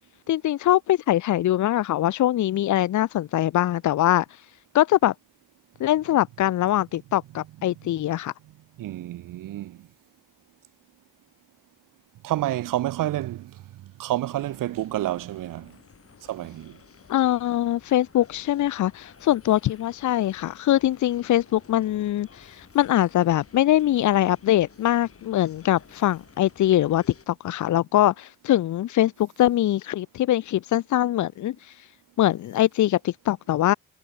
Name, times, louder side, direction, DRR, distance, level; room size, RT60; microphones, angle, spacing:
voice 1, 0.3-4.2 4.7-5.1 5.8-8.3 17.1-31.6 32.2-33.7, left 13 dB, 65° left, 0.6 m, -22 dB
voice 2, 8.8-9.9 12.2-13.5 14.0-15.7 16.3-16.8, right 14 dB, 85° right, 0.8 m, -29 dB
sound 1, 14.2-27.3, left 6 dB, 45° left, 7.9 m, -53 dB
cardioid pair, 100°, 32 cm